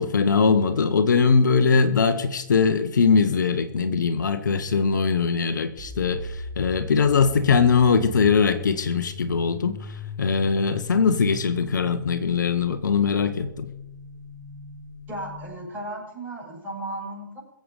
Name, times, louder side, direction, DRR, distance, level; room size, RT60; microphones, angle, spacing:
voice 1, 0.0-13.7, left 5 dB, 65° left, 9 dB, 1.2 m, -21 dB
sound 1, 5.8-15.5, left 1 dB, 35° right, 5.1 m, -38 dB
voice 2, 15.1-17.4, right 1 dB, 20° right, -3 dB, 6.8 m, -35 dB
22.0 x 8.0 x 5.1 m, 0.88 s
figure-of-eight pair, 125°, 11 cm